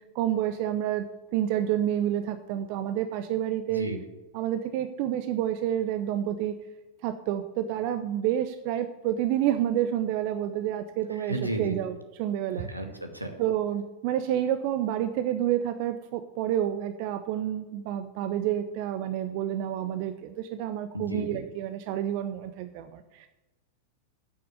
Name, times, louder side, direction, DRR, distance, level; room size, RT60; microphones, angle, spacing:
voice 1, 0.1-1.1 1.3-3.9 4.3-6.6 7.0-12.7 13.4-23.3, right 11 dB, 45° right, 10 dB, 0.7 m, -29 dB
voice 2, 3.7-4.0 11.3-11.8 12.5-13.3 20.9-21.4, right 1 dB, 85° right, 5 dB, 1.6 m, -33 dB
8.7 x 6.8 x 8.0 m, 1.1 s
figure-of-eight pair, 90°, 0 cm